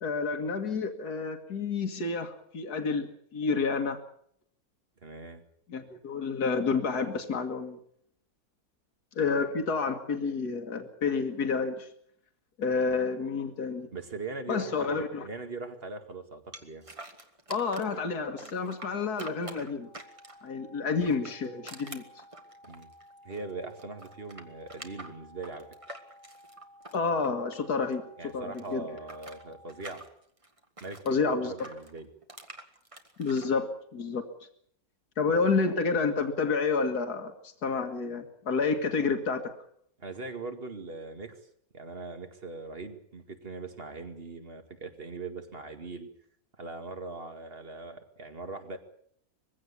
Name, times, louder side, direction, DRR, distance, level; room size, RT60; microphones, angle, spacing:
voice 1, 0.0-4.0 5.7-7.8 9.2-11.9 12.6-13.9 14.5-15.3 17.5-19.9 20.4-22.0 26.9-28.0 28.3-28.8 31.1-31.7 33.2-34.3 35.2-37.3 37.6-39.5, left 4 dB, 80° left, 6 dB, 2.3 m, -29 dB
voice 2, 5.0-5.4 12.8-12.9 13.9-16.9 22.7-22.9 23.2-25.7 28.2-30.0 30.8-32.1 35.4-35.5 40.0-41.4 41.7-46.1 46.6-48.8, right 3 dB, 40° right, 7 dB, 2.3 m, -41 dB
sound 1, 16.5-18.0 18.4-20.5 21.0-23.5 23.8-27.9 28.2-31.1 31.6-33.5, right 2 dB, 20° right, 1.7 m, -47 dB
sound 2, 19.8-29.8, equal, 70° right, 4.1 m, -55 dB
21.5 x 16.0 x 8.4 m, 0.66 s
omnidirectional pair, 1.6 m